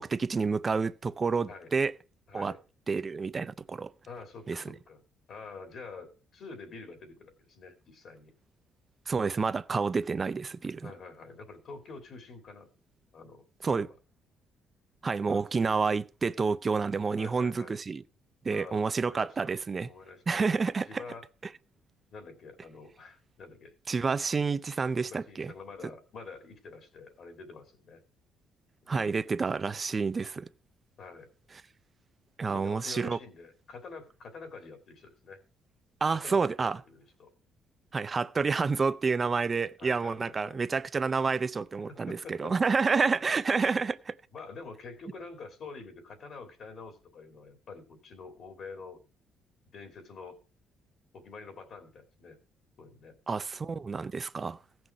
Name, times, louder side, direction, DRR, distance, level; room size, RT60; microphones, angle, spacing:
voice 1, 0.0-1.9 2.3-2.6 2.9-3.9 4.5-4.7 9.1-10.9 13.6-13.9 15.0-18.0 18.4-19.9 20.3-21.0 23.9-25.5 28.9-30.5 32.4-33.2 36.0-36.8 37.9-44.2 53.3-54.6, right 4 dB, 25° right, 0.5 m, -29 dB
voice 2, 2.3-2.6 4.1-5.0 5.3-8.3 10.8-12.7 13.1-13.9 15.3-15.4 17.2-17.8 18.5-19.6 19.9-20.5 20.9-21.2 22.1-23.7 25.0-28.0 28.8-29.2 31.0-31.3 32.5-35.4 36.1-37.3 39.8-40.6 41.9-42.5 44.3-49.0 49.7-50.4 51.1-52.4 52.8-53.2, left 4 dB, 50° left, 2.8 m, -47 dB
16.0 x 6.1 x 4.9 m
cardioid pair, 150°, 0 cm